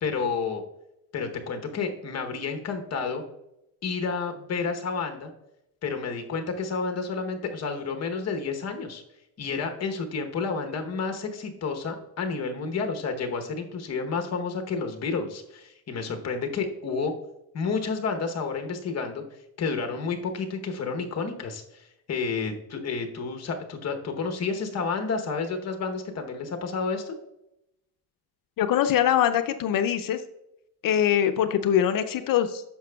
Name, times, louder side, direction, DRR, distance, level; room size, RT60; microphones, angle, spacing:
voice 1, 0.0-0.6 1.1-3.2 3.8-5.3 5.8-9.0 9.4-17.1 17.5-19.2 19.6-27.2, left 4 dB, 40° left, 5 dB, 0.9 m, -30 dB
voice 2, 28.6-30.2 30.8-32.6, left 10 dB, 60° left, 10 dB, 0.5 m, -23 dB
10.0 x 6.6 x 2.3 m, 0.87 s
cardioid pair, 170°, 38 cm